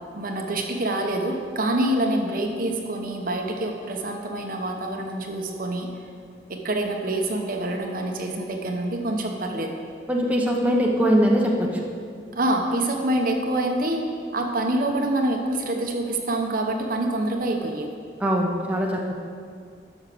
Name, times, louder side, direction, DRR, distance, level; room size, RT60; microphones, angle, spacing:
voice 1, 0.1-5.9 6.5-9.7 12.3-14.1 14.3-17.9, right 1 dB, 55° right, 2 dB, 1.1 m, -26 dB
voice 2, 10.1-11.8 18.2-19.1, equal, 10° right, -1 dB, 1.0 m, -21 dB
12.0 x 6.5 x 6.1 m, 2.2 s
head